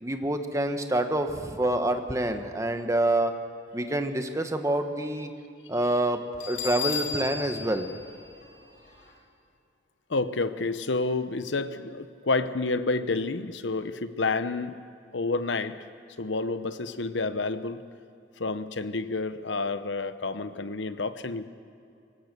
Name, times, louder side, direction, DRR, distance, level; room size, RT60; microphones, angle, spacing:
voice 1, 0.0-3.4 3.7-5.3 5.7-7.9, right 1 dB, 15° right, 6 dB, 1.2 m, -27 dB
Bell, 6.4-9.1, left 7 dB, 50° left, 4.8 m, -35 dB
voice 2, 10.1-14.8 15.1-15.8 16.2-17.8 18.4-21.5, left 3 dB, 90° left, 12 dB, 0.9 m, -29 dB
25.0 x 17.0 x 6.8 m, 2.5 s
head